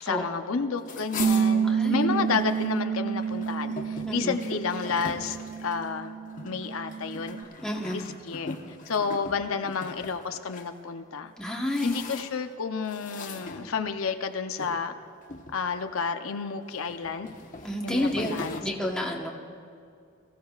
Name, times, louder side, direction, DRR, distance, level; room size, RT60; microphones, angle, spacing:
voice 1, 0.0-5.4 5.6-6.2 6.4-7.4 7.9-8.6 8.9-11.3 11.8-14.9 15.5-17.3 17.8-18.6, left 5 dB, 80° left, 7 dB, 0.7 m, -31 dB
sound 1, 0.8-2.7 3.1-10.7 11.3-12.5 12.9-14.1 14.6-14.8 15.2-16.0 16.6-18.6, left 3 dB, 40° left, 1.2 m, -41 dB
Bass guitar, 1.2-7.4, right 6 dB, 85° right, 0.5 m, -29 dB
voice 2, 1.6-2.3 4.0-4.3 7.6-8.0 11.4-11.9 17.6-18.3 18.6-19.3, left 1 dB, 5° left, -1 dB, 1.1 m, -30 dB
24.0 x 15.5 x 2.4 m, 2.3 s
head